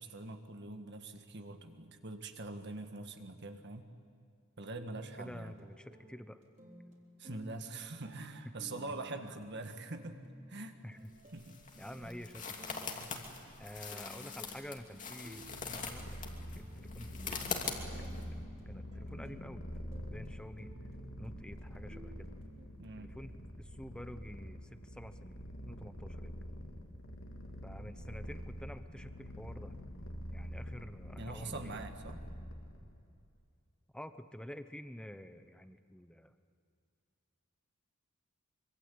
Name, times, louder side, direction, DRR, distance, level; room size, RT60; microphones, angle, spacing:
voice 1, 0.0-3.9 4.6-5.5 7.2-10.2 10.5-10.8 11.3-11.6 13.0-13.3 22.8-23.2 31.2-32.2, right 2 dB, 55° right, 6 dB, 1.8 m, -44 dB
sound 1, 4.7-22.7, right 1 dB, 35° right, 3.9 m, -56 dB
voice 2, 5.2-6.4 8.4-8.5 10.8-11.1 11.8-12.9 13.6-17.4 18.0-20.7 21.2-22.4 23.0-26.4 27.6-29.7 30.3-31.9 33.9-36.3, equal, 5° left, 10 dB, 1.0 m, -49 dB
sound 2, 11.1-18.2, left 5 dB, 40° left, 2.6 m, -43 dB
Purr, 15.3-33.0, equal, 75° left, 3.1 m, -46 dB
25.0 x 25.0 x 8.6 m, 2.4 s
head